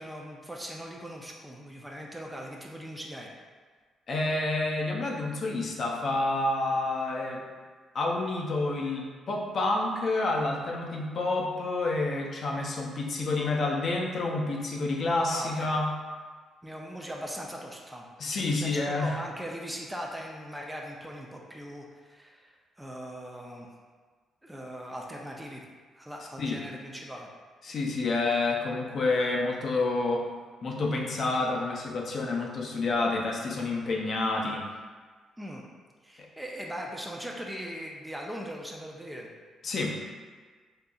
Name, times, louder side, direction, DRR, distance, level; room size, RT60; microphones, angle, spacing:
voice 1, 0.0-3.3 15.3-15.7 16.6-23.7 24.4-25.6 25.9-27.3 35.4-35.7 36.0-39.3, equal, 10° right, -1 dB, 0.4 m, -40 dB
voice 2, 4.1-7.4 7.9-15.9 18.2-19.2 26.4-26.6 27.6-30.3 30.6-34.6 39.6-40.0, left 2 dB, 50° left, -1 dB, 0.5 m, -29 dB
3.7 x 2.7 x 2.3 m, 1.5 s
cardioid pair, 90°, 0 cm